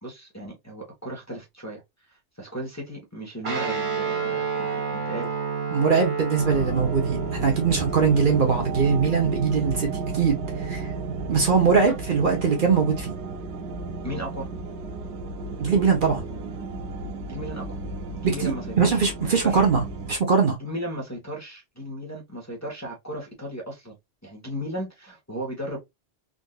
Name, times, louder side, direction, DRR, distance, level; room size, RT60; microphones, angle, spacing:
voice 1, 0.0-1.8 2.4-5.3 14.0-14.5 17.3-17.8 18.2-19.0 19.4-19.6 20.6-24.0 24.2-25.8, equal, 15° left, 1.0 m, -35 dB
Guitar, 3.4-12.0, right 6 dB, 70° right, 1.3 m, -31 dB
voice 2, 5.7-9.9 10.1-10.9 11.3-13.1 15.6-16.2 18.4-19.8 20.1-20.6, right 5 dB, 55° right, 1.0 m, -21 dB
sound 1, 6.4-20.2, right 3 dB, 85° right, 0.9 m, -34 dB
3.8 x 2.6 x 2.3 m
omnidirectional pair, 1.1 m